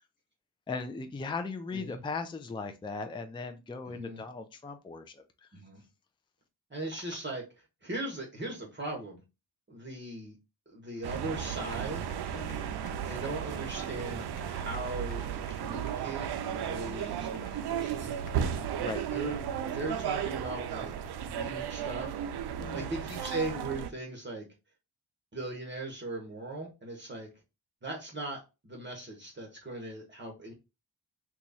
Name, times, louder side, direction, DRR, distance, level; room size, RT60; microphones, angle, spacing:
voice 1, 0.7-5.2 12.3-12.9 18.8-19.0 22.6-22.9, left 4 dB, 10° left, 0.4 m, -38 dB
voice 2, 3.8-4.2 5.5-5.8 6.7-7.5 7.8-9.2 9.7-10.4 10.7-12.2 13.0-18.5 19.1-19.4 19.7-22.3 22.7-24.5 25.3-27.3 27.8-30.5, right 2 dB, 25° right, 1.0 m, -39 dB
sound 1, 11.0-23.9, right 9 dB, 70° right, 0.5 m, -35 dB
sound 2, 11.4-18.7, left 5 dB, 65° left, 0.9 m, -57 dB
3.0 x 2.3 x 4.0 m
cardioid pair, 85°, 41 cm